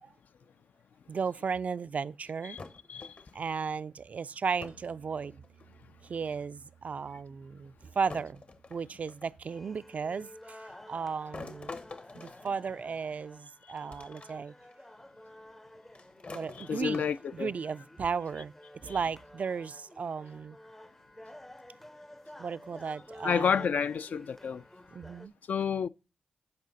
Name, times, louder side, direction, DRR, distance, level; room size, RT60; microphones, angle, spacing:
voice 1, 1.1-2.6 3.3-5.4 6.0-8.4 8.7-11.8 12.1-14.5 16.3-17.0 17.3-20.6 22.4-23.7 24.9-25.3, right 5 dB, 60° right, 0.3 m, -35 dB
sound 1, 2.6-3.5 4.6-4.9 5.2-5.8 6.9-7.0 8.1-9.4 11.3-13.2 13.9-14.3 14.7-14.8 15.9-17.4, left 3 dB, 55° left, 1.0 m, -47 dB
sound 2, 4.7-10.5, right 8 dB, 85° right, 1.1 m, -62 dB
sound 3, 9.4-25.3, left 1 dB, 10° left, 0.5 m, -52 dB
voice 2, 16.6-17.5 18.9-19.0 23.2-24.6 25.5-25.9, left 7 dB, 70° left, 0.3 m, -30 dB
12.0 x 4.9 x 3.9 m
supercardioid pair, 40°, 3 cm